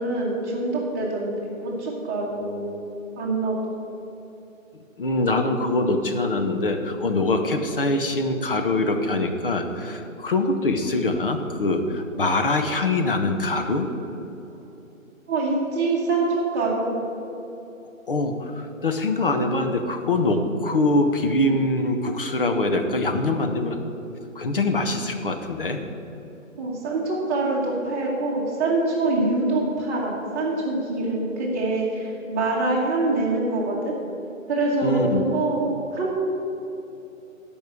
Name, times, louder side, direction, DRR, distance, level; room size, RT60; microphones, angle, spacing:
voice 1, 0.0-1.3 1.6-2.9 3.2-3.6 15.3-16.9 26.6-33.9 34.5-36.1, right 2 dB, 10° right, -5 dB, 1.2 m, -25 dB
voice 2, 5.0-13.9 18.1-23.8 24.3-25.8 34.8-35.2, left 2 dB, 40° left, 5 dB, 1.0 m, -23 dB
10.5 x 5.6 x 8.2 m, 2.9 s
figure-of-eight pair, 145°, 41 cm